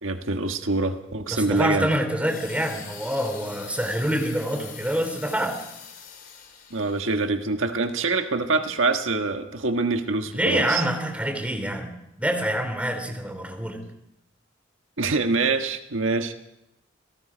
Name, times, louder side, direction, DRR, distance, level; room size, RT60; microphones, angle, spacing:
voice 1, 0.0-1.9 6.7-10.8 15.0-16.3, right 3 dB, 90° right, 6 dB, 1.5 m, -25 dB
voice 2, 1.3-5.6 10.3-13.8, equal, 5° right, 5 dB, 3.6 m, -26 dB
sound 1, 2.2-7.2 7.8-8.0, left 7 dB, 50° left, 4.3 m, -43 dB
29.0 x 17.5 x 5.2 m, 0.84 s
head